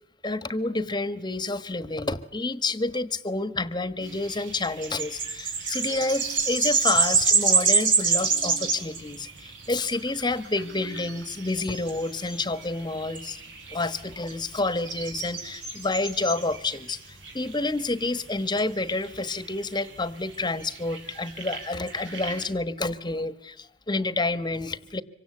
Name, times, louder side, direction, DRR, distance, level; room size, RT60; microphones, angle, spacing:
voice 1, 0.2-13.4 13.7-17.0 17.3-25.0, left 2 dB, 25° left, 13 dB, 1.3 m, -29 dB
sound 1, 4.0-22.5, right 5 dB, 80° right, 5.0 m, -28 dB
26.0 x 24.0 x 8.5 m, 0.69 s
head